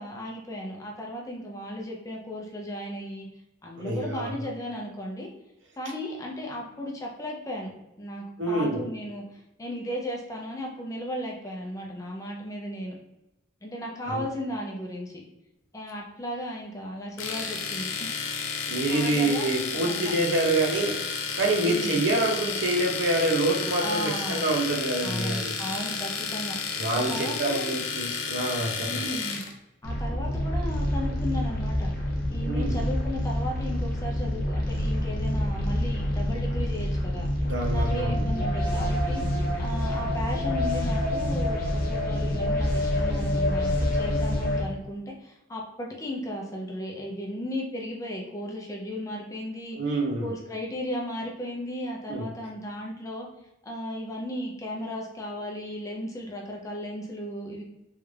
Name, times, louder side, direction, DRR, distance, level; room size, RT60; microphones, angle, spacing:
voice 1, 0.0-3.3 3.6-5.3 5.8-7.7 8.0-13.0 13.6-15.2 15.7-18.1 18.9-20.1 21.6-22.0 23.8-24.6 25.0-26.6 26.9-27.8 28.8-29.4 29.8-31.9 32.3-37.3 37.7-39.2 39.6-49.8 50.2-53.3 53.6-57.6, equal, 15° left, -1 dB, 0.5 m, -35 dB
voice 2, 3.8-4.4 8.4-8.9 14.1-14.2 18.7-21.0 21.4-25.6 26.8-29.1 32.5-32.7 37.4-38.2 49.7-50.3 52.1-52.3, right 2 dB, 70° right, 1 dB, 0.7 m, -27 dB
Domestic sounds home sounds, 17.2-29.5, left 5 dB, 80° left, 0.5 m, -32 dB
sound 1, 29.8-44.6, left 1 dB, 45° left, 0.7 m, -27 dB
3.3 x 2.5 x 3.2 m, 0.92 s
head